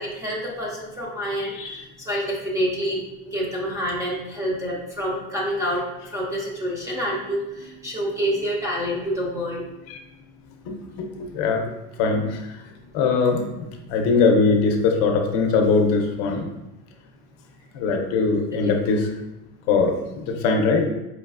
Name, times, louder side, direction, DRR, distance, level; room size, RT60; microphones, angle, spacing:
voice 1, 0.0-9.6 18.5-18.7, equal, 10° right, -4 dB, 0.5 m, -27 dB
voice 2, 10.6-11.7 12.0-12.4 12.9-16.5 17.7-19.1 19.7-20.9, left 4 dB, 55° left, 3 dB, 0.6 m, -21 dB
4.8 x 3.0 x 2.4 m, 0.96 s
cardioid pair, 165°, 31 cm